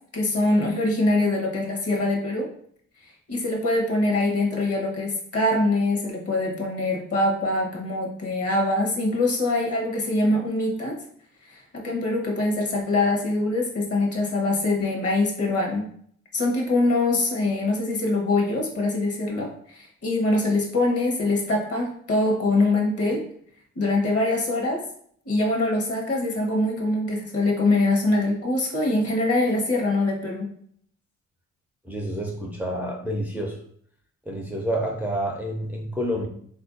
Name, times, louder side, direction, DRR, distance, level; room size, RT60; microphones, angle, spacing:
voice 1, 0.1-2.5 3.3-11.0 11.5-15.8 16.3-23.2 23.8-24.8 25.3-30.5, left 2 dB, 50° left, 0 dB, 1.0 m, -23 dB
voice 2, 31.8-33.6 34.3-36.3, equal, 5° right, -1 dB, 0.4 m, -28 dB
3.4 x 2.5 x 2.5 m, 0.63 s
cardioid pair, 90°, 30 cm